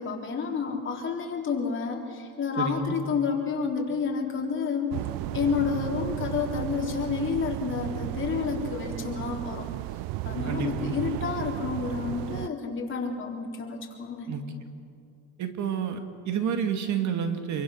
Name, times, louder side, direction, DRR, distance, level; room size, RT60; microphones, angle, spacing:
voice 1, 0.0-4.9 5.3-9.7 10.3-14.3, left 5 dB, 35° left, -1 dB, 3.7 m, -30 dB
voice 2, 2.6-3.0 10.5-10.7 14.3-14.4 15.4-17.6, right 7 dB, 55° right, 6 dB, 2.2 m, -29 dB
sound 1, 4.9-12.5, right 18 dB, 80° right, 0.5 m, -34 dB
26.5 x 23.5 x 6.5 m, 2.5 s
cardioid pair, 120°, 34 cm